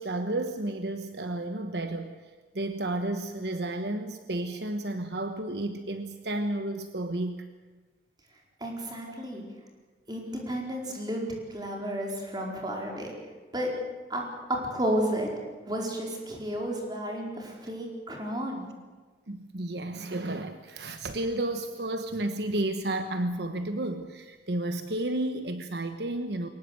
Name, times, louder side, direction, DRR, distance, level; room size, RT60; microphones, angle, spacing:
voice 1, 0.0-2.1 2.5-7.5 9.1-9.2 19.3-26.5, right 1 dB, 65° right, 8 dB, 1.2 m, -32 dB
voice 2, 8.6-9.4 10.1-13.1 13.5-13.7 14.1-14.2 14.5-15.3 15.7-18.7, right 1 dB, 25° right, 0 dB, 4.6 m, -32 dB
22.5 x 19.5 x 7.9 m, 1.4 s
head